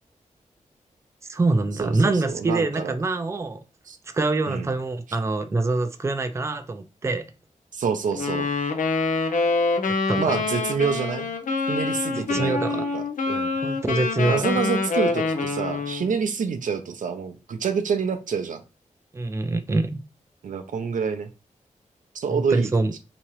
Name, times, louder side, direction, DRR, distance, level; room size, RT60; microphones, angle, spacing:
voice 1, 1.3-3.6 4.1-7.2 9.9-10.4 12.3-12.8 13.6-14.5 19.1-20.0 22.3-22.9, right 2 dB, 20° right, 0.4 m, -25 dB
voice 2, 1.8-3.0 3.9-4.0 4.5-4.7 7.7-8.5 10.2-11.3 11.7-13.5 14.2-18.6 20.4-21.3 22.1-23.0, right 6 dB, 80° right, 0.5 m, -27 dB
Wind instrument woodwind instrument, 8.1-16.1, left 3 dB, 85° left, 0.6 m, -25 dB
3.6 x 3.0 x 3.0 m
wide cardioid pair, 95°, 13 cm